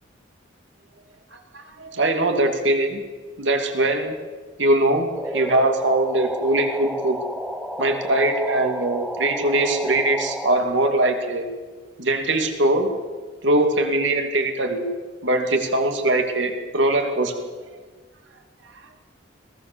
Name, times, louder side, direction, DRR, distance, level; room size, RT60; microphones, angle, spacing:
voice 1, 1.5-3.0 3.4-4.1 4.6-7.2 7.8-11.5 12.0-12.9 13.4-14.9 15.2-17.5, right 2 dB, 70° right, 4 dB, 2.7 m, -21 dB
sound 1, 5.1-10.6, equal, ahead, 1.1 m, -32 dB
21.5 x 17.0 x 7.0 m, 1.4 s
head